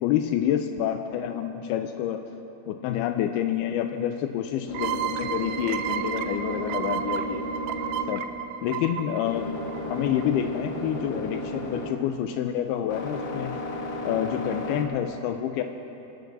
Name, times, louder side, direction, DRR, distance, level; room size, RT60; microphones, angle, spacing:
voice 1, 0.0-2.2 2.7-7.4 8.1-8.2 8.6-9.5 9.8-13.6 14.0-15.6, left 10 dB, 90° left, 6 dB, 2.6 m, -28 dB
sound 1, 3.7-14.9, equal, 65° left, 1.6 m, -35 dB
sound 2, 4.7-10.2, right 9 dB, 85° right, 2.5 m, -32 dB
24.5 x 18.0 x 2.7 m, 2.9 s
omnidirectional pair, 4.4 m